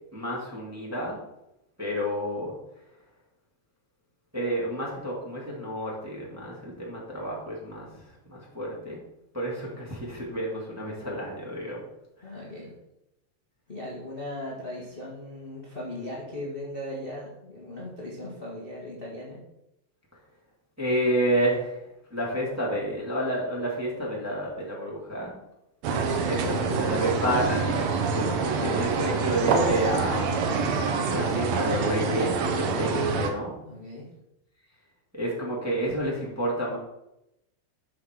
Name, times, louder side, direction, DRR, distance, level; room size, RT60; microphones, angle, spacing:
voice 1, 0.1-1.2 1.8-2.6 4.3-7.9 8.3-9.0 9.3-11.8 12.3-12.4 20.8-21.8 22.1-25.4 26.2-30.4 30.7-30.8 31.1-33.5 35.1-36.8, right 1 dB, 5° right, -4 dB, 2.0 m, -30 dB
voice 2, 12.2-12.7 13.7-19.4 26.3-26.9 33.6-34.1, left 1 dB, 20° left, -6 dB, 1.6 m, -38 dB
sound 1, 25.8-33.3, right 4 dB, 70° right, 2.0 m, -26 dB
7.7 x 5.9 x 6.0 m, 0.86 s
omnidirectional pair, 3.5 m